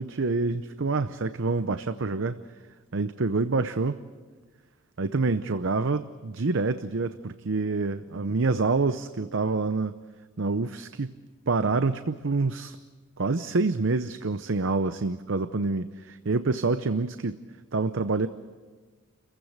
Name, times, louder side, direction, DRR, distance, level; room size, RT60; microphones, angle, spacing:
voice 1, 0.0-2.4 2.9-4.0 5.0-9.9 10.4-11.1 11.5-12.8 13.2-17.4 17.7-18.3, right 3 dB, 60° right, 11 dB, 0.7 m, -27 dB
30.0 x 15.5 x 8.1 m, 1.4 s
head